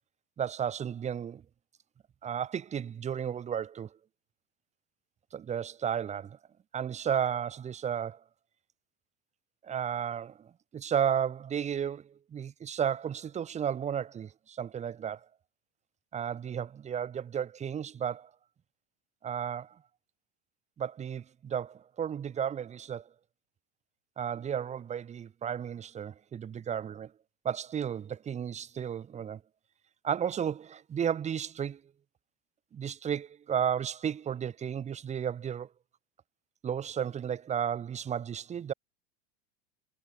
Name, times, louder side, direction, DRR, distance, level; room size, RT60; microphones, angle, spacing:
voice 1, 0.4-1.4 2.2-4.0 5.3-6.4 6.7-8.2 9.6-15.3 16.1-18.3 19.2-19.8 20.8-23.1 24.2-27.1 27.4-29.4 30.0-31.8 32.7-35.7 36.6-38.7, right 8 dB, 20° right, 2.4 m, -33 dB
supercardioid pair, 155°, 33 cm